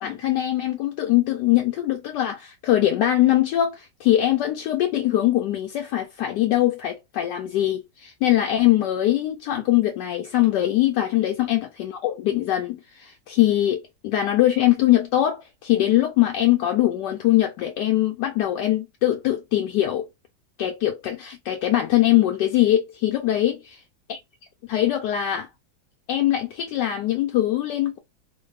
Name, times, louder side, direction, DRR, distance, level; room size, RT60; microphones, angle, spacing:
voice 1, 0.0-20.1 20.6-23.7 24.1-24.2 24.7-25.5 26.1-28.0, left 13 dB, 75° left, 1.1 m, -22 dB
3.2 x 2.3 x 3.2 m
omnidirectional pair, 2.0 m